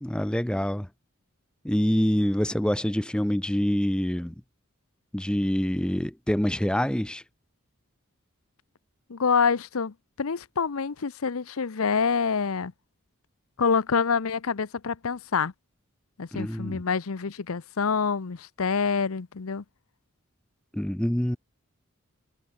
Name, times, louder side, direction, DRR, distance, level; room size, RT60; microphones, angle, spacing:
voice 1, 0.0-0.9 1.6-4.3 5.1-7.2 16.3-16.8 20.7-21.4, equal, 5° left, 0.5 m, -26 dB
voice 2, 9.1-12.7 13.6-15.5 16.2-19.6, left 5 dB, 80° left, 0.7 m, -26 dB
head